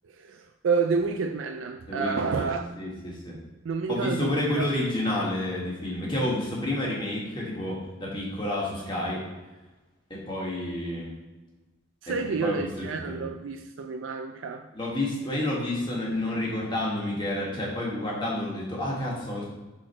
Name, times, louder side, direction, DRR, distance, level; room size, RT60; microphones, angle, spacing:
voice 1, 0.0-2.7 3.6-4.7 12.0-14.7, right 5 dB, 80° right, 5 dB, 0.4 m, -29 dB
voice 2, 1.9-3.4 3.9-9.2 10.1-11.1 12.1-13.2 14.7-19.5, left 1 dB, 25° left, -4 dB, 1.7 m, -30 dB
6.2 x 4.3 x 4.4 m, 1.2 s
head